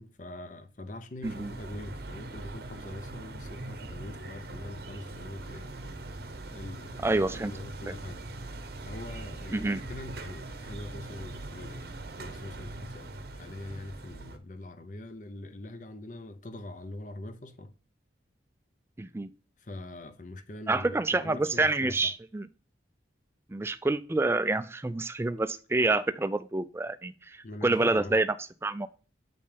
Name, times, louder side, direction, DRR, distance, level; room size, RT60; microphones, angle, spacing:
voice 1, 0.0-5.7 6.5-8.2 8.8-17.7 19.6-22.1 27.4-28.1, left 1 dB, 40° left, 0.7 m, -43 dB
sound 1, 1.2-14.4, right 2 dB, 55° right, 0.8 m, -41 dB
voice 2, 7.0-7.5 9.5-9.8 19.0-19.3 20.7-22.5 23.5-28.3 28.6-28.9, right 2 dB, 15° right, 0.3 m, -27 dB
7.8 x 5.4 x 3.4 m
head